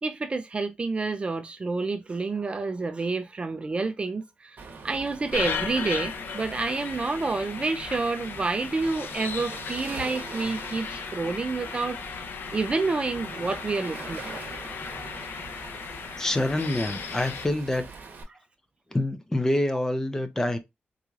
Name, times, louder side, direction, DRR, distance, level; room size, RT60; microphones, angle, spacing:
voice 1, 0.0-4.6 4.8-12.3 12.5-14.4, right 3 dB, 30° right, 0.4 m, -29 dB
Waves surf, 4.6-18.2, right 4 dB, 60° right, 1.0 m, -43 dB
sound 1, 5.3-17.5, left 6 dB, 75° left, 0.5 m, -36 dB
voice 2, 16.2-17.9 18.9-20.6, left 1 dB, 15° left, 0.6 m, -26 dB
3.9 x 3.0 x 2.3 m
wide cardioid pair, 130°, 4 cm